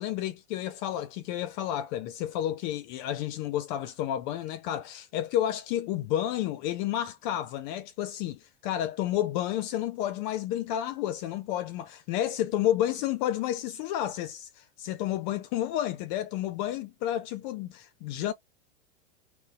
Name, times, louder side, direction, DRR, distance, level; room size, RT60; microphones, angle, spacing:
voice 1, 0.0-18.3, left 12 dB, 45° left, 0.4 m, -31 dB
3.9 x 2.0 x 2.3 m
hypercardioid pair, 105°, 33 cm